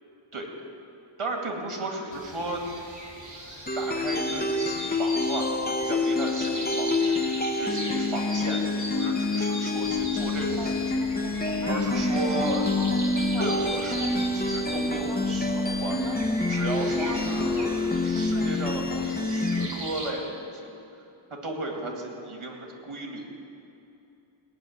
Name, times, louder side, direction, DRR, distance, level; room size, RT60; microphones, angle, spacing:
voice 1, 1.2-2.6 3.7-12.7 13.4-16.0 16.5-20.7 21.3-23.3, right 2 dB, 80° right, 0 dB, 2.3 m, -35 dB
sound 1, 2.1-20.1, equal, 35° right, 2.8 m, -39 dB
sound 2, 3.7-19.7, left 2 dB, 20° left, 0.8 m, -27 dB
Boat Water vehicle, 9.8-19.1, right 2 dB, 65° right, 1.6 m, -41 dB
18.0 x 6.9 x 9.5 m, 2.8 s
wide cardioid pair, 80°, 49 cm